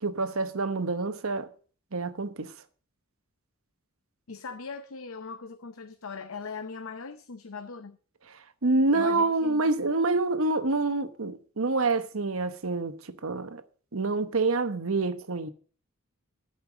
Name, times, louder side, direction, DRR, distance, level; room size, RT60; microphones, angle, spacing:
voice 1, 0.0-1.5 1.9-2.5 8.6-13.6 13.9-15.5, right 3 dB, 70° right, 1.0 m, -27 dB
voice 2, 4.3-8.0 8.9-9.7, left 5 dB, 70° left, 0.7 m, -40 dB
14.0 x 5.6 x 7.2 m
head